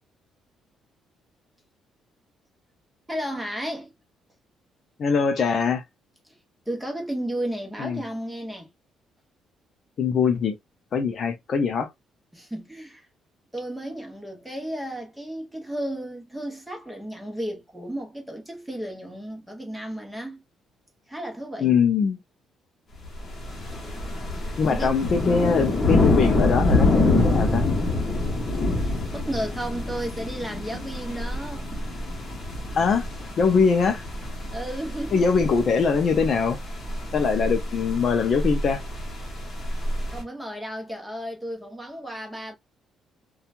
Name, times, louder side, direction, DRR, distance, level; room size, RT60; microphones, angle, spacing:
voice 1, 3.1-3.9 6.7-8.7 12.3-13.1 13.5-20.4 21.1-21.8 24.3-25.0 29.1-31.8 34.5-35.4 40.1-42.5, right 1 dB, 5° right, 0.9 m, -33 dB
voice 2, 5.0-5.8 7.8-8.0 10.0-10.6 10.9-11.9 21.6-22.2 24.6-27.6 32.8-33.1 33.4-34.0 35.1-36.6 37.1-38.8, left 5 dB, 45° left, 0.4 m, -22 dB
sound 1, 23.0-40.2, left 2 dB, 30° left, 1.0 m, -26 dB
2.9 x 2.3 x 2.5 m
cardioid pair, 145°, 0 cm